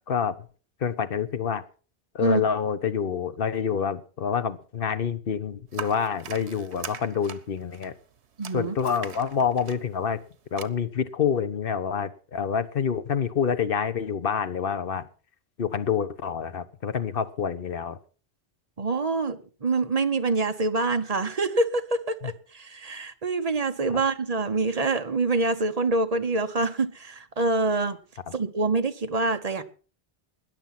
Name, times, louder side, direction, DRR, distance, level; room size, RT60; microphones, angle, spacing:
voice 1, 0.1-0.5 0.8-1.6 2.1-8.0 8.5-10.2 10.5-15.0 15.6-18.0 22.2-22.3, left 7 dB, 60° left, 12 dB, 1.1 m, -27 dB
sound 1, 5.7-10.6, right 7 dB, 85° right, 1.2 m, -42 dB
voice 2, 8.4-8.7 18.8-28.0 28.3-29.6, right 3 dB, 40° right, 9 dB, 1.0 m, -26 dB
20.0 x 7.0 x 5.9 m, 0.40 s
omnidirectional pair, 1.1 m